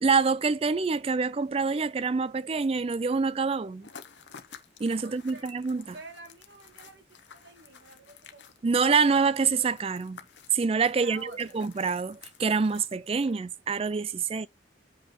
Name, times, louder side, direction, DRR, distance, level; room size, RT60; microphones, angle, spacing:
voice 1, 0.0-3.9 4.8-5.9 8.6-10.2 10.5-14.5, right 5 dB, 30° right, 0.4 m, -26 dB
sound 1, 3.8-13.6, left 7 dB, 80° left, 0.9 m, -52 dB
voice 2, 5.0-5.5 5.9-8.5 10.9-11.6, right 2 dB, 80° right, 1.9 m, -48 dB
6.3 x 5.4 x 5.9 m
head